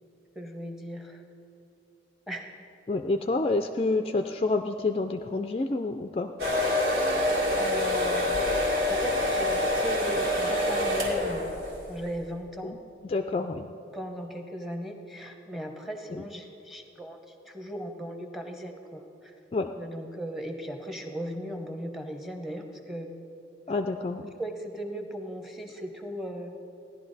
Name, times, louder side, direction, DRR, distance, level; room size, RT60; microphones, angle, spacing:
voice 1, 0.3-1.2 2.3-2.6 7.4-11.5 11.9-12.7 13.9-19.3 19.8-23.1 24.4-26.6, equal, ahead, 4 dB, 0.8 m, -37 dB
voice 2, 2.9-6.3 12.6-12.8 13.0-13.7 16.1-16.2 19.5-19.7 23.7-24.3, left 3 dB, 30° left, 6 dB, 0.3 m, -28 dB
sound 1, 6.4-11.9, left 1 dB, 65° right, 2.0 m, -26 dB
16.0 x 11.0 x 4.1 m, 2.7 s
head